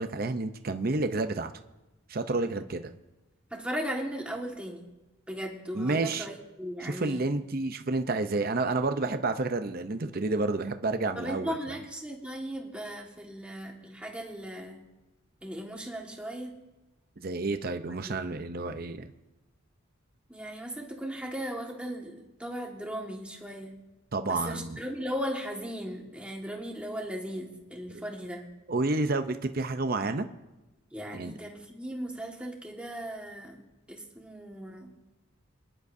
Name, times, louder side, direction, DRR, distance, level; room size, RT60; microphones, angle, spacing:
voice 1, 0.0-1.5 2.1-2.9 5.7-6.3 6.8-11.8 17.2-19.1 24.1-24.8 27.9-28.0 28.7-30.3 31.1-31.3, right 3 dB, 45° right, 8 dB, 0.6 m, -30 dB
voice 2, 3.5-4.9 5.3-7.2 11.2-14.8 15.4-16.6 17.9-18.4 20.3-23.8 24.3-28.4 30.9-33.6 33.9-34.9, equal, 5° right, 0 dB, 1.6 m, -37 dB
25.5 x 11.0 x 2.7 m, 1.0 s
head